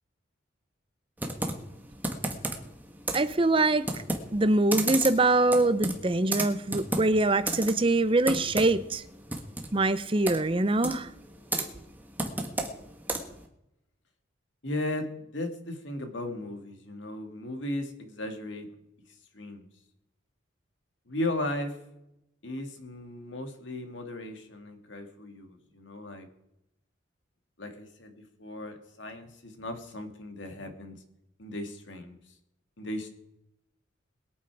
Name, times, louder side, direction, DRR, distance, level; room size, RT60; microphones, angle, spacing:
Computer keyboard, 1.2-13.5, right 2 dB, 10° right, 1.4 m, -34 dB
voice 1, 3.1-3.8 4.3-9.0 9.7-11.1, right 2 dB, 25° right, 13 dB, 0.7 m, -24 dB
voice 2, 14.6-18.7 19.3-19.7 21.1-21.8 22.4-26.3 27.6-31.0 31.4-32.2 32.8-33.1, left 1 dB, 70° left, 6 dB, 2.1 m, -36 dB
22.0 x 8.6 x 4.8 m, 0.83 s
head